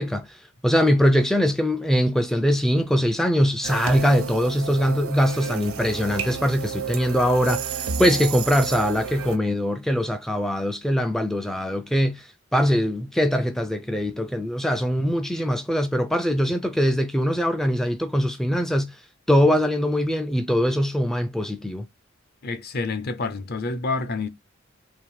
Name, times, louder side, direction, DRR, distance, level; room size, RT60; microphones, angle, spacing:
voice 1, 0.0-19.0 19.3-21.9, equal, ahead, 0.3 m, -22 dB
sound 1, 3.6-9.4, right 7 dB, 90° right, 0.8 m, -31 dB
voice 2, 22.4-24.3, left 3 dB, 50° left, 0.6 m, -28 dB
3.6 x 2.7 x 4.6 m
head